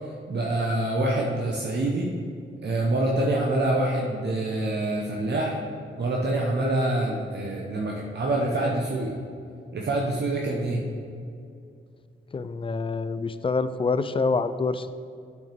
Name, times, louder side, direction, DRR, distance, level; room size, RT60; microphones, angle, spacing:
voice 1, 0.3-2.1 2.6-5.6 6.0-9.1 9.7-10.9, right 1 dB, 55° right, -2 dB, 0.9 m, -26 dB
voice 2, 12.3-14.9, left 4 dB, 25° left, 13 dB, 0.4 m, -26 dB
8.5 x 6.4 x 3.4 m, 2.4 s
cardioid pair, 75°, 20 cm